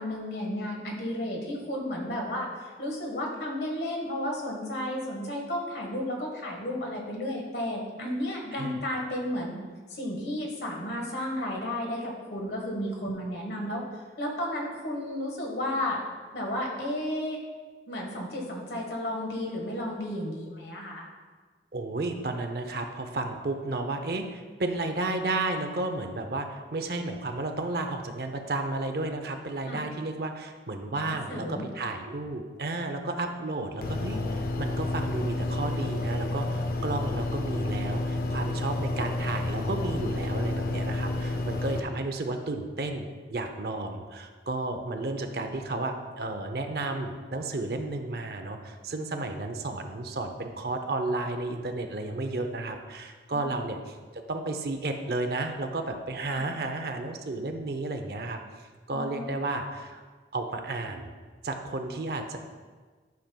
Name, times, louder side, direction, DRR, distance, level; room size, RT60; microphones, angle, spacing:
voice 1, 0.0-9.6 9.9-16.0 16.3-17.4 17.9-21.1 29.7-29.8 30.9-31.6 53.3-53.6 56.3-56.4 58.9-59.3, left 1 dB, 70° left, 0 dB, 1.4 m, -33 dB
voice 2, 21.7-58.4 58.9-60.0 60.3-61.1 61.4-62.4, right 2 dB, 60° right, 5 dB, 0.6 m, -32 dB
sound 1, 33.8-41.8, left 2 dB, 50° left, 0.5 m, -30 dB
12.0 x 5.8 x 2.3 m, 1.5 s
head